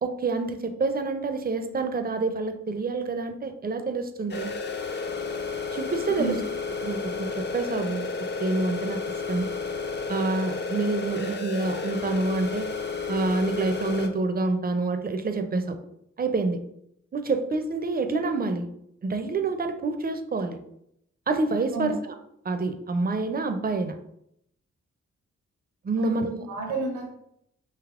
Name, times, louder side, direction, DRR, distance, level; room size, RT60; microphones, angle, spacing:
voice 1, 0.0-4.5 5.7-6.3 6.8-8.1 8.4-9.0 9.3-9.5 10.1-12.7 13.1-15.8 16.2-16.6 17.1-18.7 19.0-20.6 21.3-22.1 22.4-24.0 25.8-26.4, right 3 dB, 30° right, 8 dB, 0.4 m, -27 dB
sound 1, 4.3-14.1, left 4 dB, 35° left, 0.5 m, -32 dB
voice 2, 26.5-27.1, right 3 dB, 80° right, 1 dB, 0.6 m, -30 dB
3.4 x 2.9 x 2.4 m, 0.76 s
supercardioid pair, 45°, 30 cm